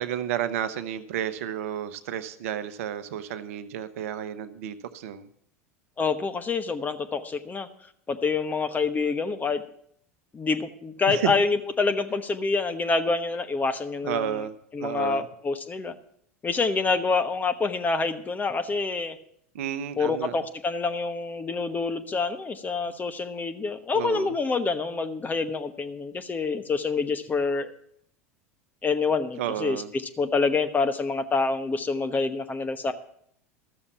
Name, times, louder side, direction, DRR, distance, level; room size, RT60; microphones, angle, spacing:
voice 1, 0.0-5.3 11.1-11.3 14.0-14.5 14.8-15.3 19.5-20.4 23.9-24.3 29.4-29.9, right 10 dB, 70° right, 12 dB, 0.8 m, -31 dB
voice 2, 6.0-7.7 8.1-9.6 10.3-14.4 14.7-15.9 16.4-19.2 20.0-27.7 28.8-29.8 30.2-32.9, left 4 dB, 20° left, 9 dB, 1.0 m, -27 dB
13.0 x 7.0 x 7.0 m, 0.67 s
hypercardioid pair, 85°, 8 cm